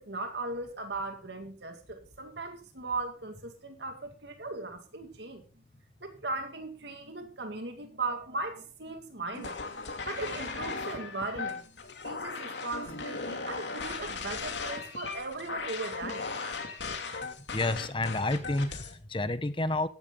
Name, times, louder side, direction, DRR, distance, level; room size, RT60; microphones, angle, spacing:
voice 1, 0.0-5.4 6.0-11.6 12.0-16.3, right 3 dB, 75° right, 2.2 m, -38 dB
sound 1, 9.3-18.9, left 4 dB, 85° left, 2.7 m, -37 dB
voice 2, 17.5-19.9, left 2 dB, 30° left, 1.0 m, -30 dB
15.0 x 12.0 x 3.9 m
head